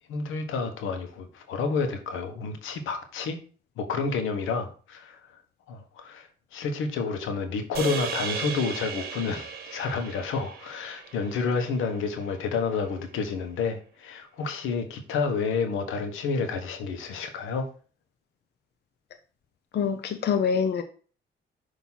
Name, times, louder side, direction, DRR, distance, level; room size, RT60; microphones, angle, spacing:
voice 1, 0.1-3.4 3.8-5.2 5.7-17.7, left 4 dB, 85° left, 1.1 m, -30 dB
sound 1, 7.7-12.2, right 6 dB, 50° right, 1.2 m, -36 dB
voice 2, 19.7-20.8, left 6 dB, 55° left, 0.7 m, -25 dB
6.2 x 2.9 x 5.6 m
cardioid pair, 90°, 20 cm